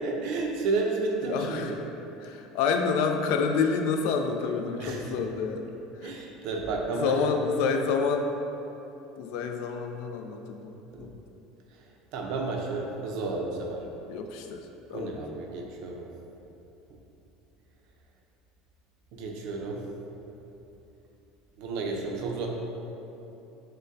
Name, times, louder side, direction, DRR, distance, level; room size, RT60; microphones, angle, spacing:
voice 1, 0.0-1.7 4.8-5.0 6.0-7.4 10.9-11.1 12.1-13.8 14.9-16.1 19.1-19.8 21.6-22.5, right 3 dB, 65° right, 1 dB, 0.5 m, -31 dB
voice 2, 1.2-1.8 2.2-5.6 6.0-6.1 6.9-8.3 9.2-11.1 14.1-14.6 14.9-15.2, left 5 dB, 70° left, 4 dB, 0.3 m, -28 dB
6.2 x 2.1 x 2.6 m, 2.9 s
supercardioid pair, 140°, 0 cm